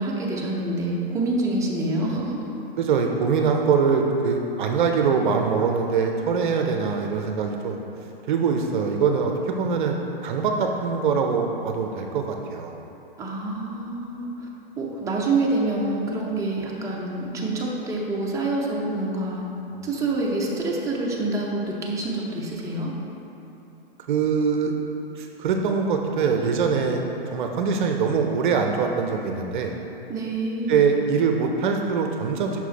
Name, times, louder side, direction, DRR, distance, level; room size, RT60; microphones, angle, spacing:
voice 1, 0.0-2.4 13.2-14.5 14.8-19.4 19.8-22.9 30.1-30.8, right 2 dB, 10° right, -3 dB, 0.7 m, -26 dB
voice 2, 2.8-7.8 8.3-12.7 24.1-24.7 25.2-27.0 27.3-29.7 30.7-32.6, right 5 dB, 55° right, 3 dB, 0.6 m, -23 dB
5.9 x 4.5 x 4.2 m, 2.9 s
hypercardioid pair, 115°, 29 cm